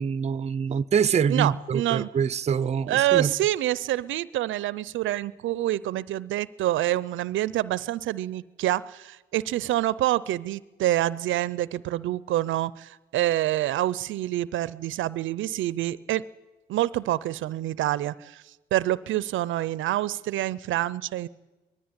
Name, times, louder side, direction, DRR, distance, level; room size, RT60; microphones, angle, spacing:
voice 1, 0.0-3.3, right 7 dB, 35° right, 0.6 m, -25 dB
voice 2, 1.3-2.1 2.9-16.2 16.7-18.4 18.7-21.3, right 14 dB, 75° right, 0.5 m, -27 dB
19.5 x 13.5 x 9.7 m
cardioid pair, 90°, 20 cm